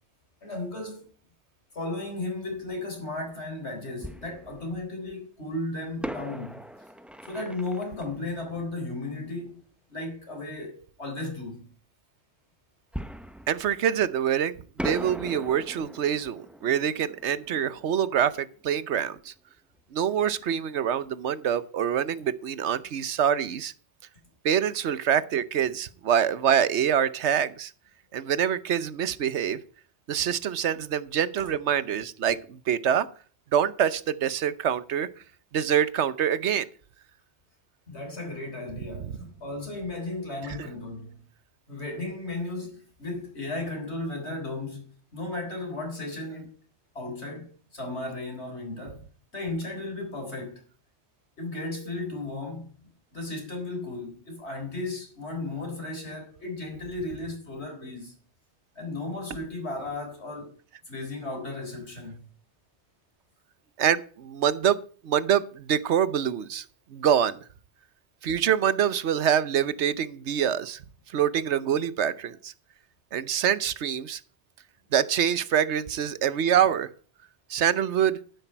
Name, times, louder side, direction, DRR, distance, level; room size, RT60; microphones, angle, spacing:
voice 1, 0.4-1.1 1.7-6.6 7.3-9.6 9.9-11.7 31.4-31.5 37.9-41.2 41.7-46.5 46.9-49.0 49.3-50.6 51.4-58.1 58.8-60.6 60.9-62.2, left 2 dB, 75° left, 4.3 m, -35 dB
Fireworks, 4.0-5.1 6.0-9.5 12.9-14.4 14.8-19.3 19.6-19.7 20.2-20.4, equal, ahead, 0.4 m, -40 dB
voice 2, 13.5-14.5 14.8-19.3 19.9-23.7 24.4-27.7 28.1-29.6 30.1-33.1 33.5-35.1 35.5-36.7 39.0-39.1 40.6-40.7 63.8-64.8 65.0-66.6 66.9-67.4 68.2-70.8 71.1-72.5 73.1-74.2 74.9-76.9 77.5-78.2, right 9 dB, 85° right, 1.1 m, -25 dB
11.5 x 10.0 x 4.5 m
omnidirectional pair, 1.1 m